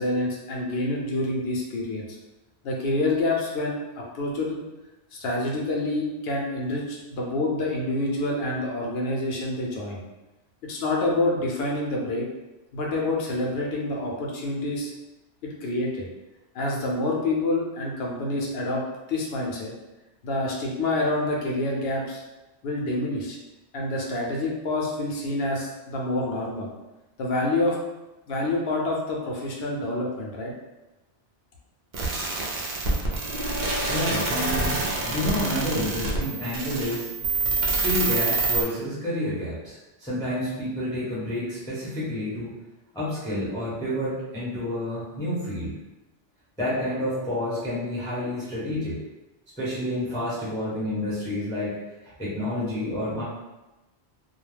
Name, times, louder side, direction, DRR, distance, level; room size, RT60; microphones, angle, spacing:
voice 1, 0.0-2.0 2.6-4.6 5.1-10.0 10.6-12.2 12.7-14.9 15.4-16.1 16.5-18.8 19.1-19.7 20.2-22.2 22.6-23.4 23.7-26.7 27.2-27.8 28.3-30.5, left 2 dB, 65° left, -2 dB, 0.8 m, -27 dB
sound 1, 31.9-38.6, right 3 dB, 55° right, 0.6 m, -27 dB
voice 2, 33.9-37.1 37.6-42.5 42.9-45.7 46.6-49.0 49.6-51.8 52.0-53.2, left 1 dB, 5° left, -9 dB, 0.6 m, -29 dB
2.3 x 2.1 x 3.2 m, 1.0 s
omnidirectional pair, 1.1 m